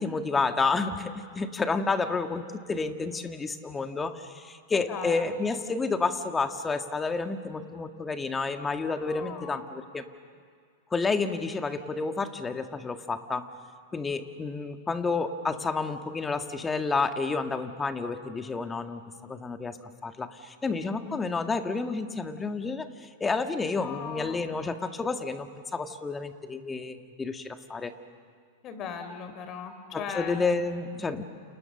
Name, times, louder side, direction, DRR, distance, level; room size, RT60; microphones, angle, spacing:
voice 1, 0.0-10.1 10.9-13.5 13.9-19.0 19.3-27.9 29.9-31.2, left 4 dB, 15° left, 8 dB, 1.7 m, -30 dB
voice 2, 4.7-5.3 9.0-9.6 20.9-21.2 23.8-24.5 28.6-30.4, left 6 dB, 40° left, 8 dB, 4.1 m, -38 dB
29.0 x 29.0 x 6.7 m, 2.1 s
hypercardioid pair, 105°, 0 cm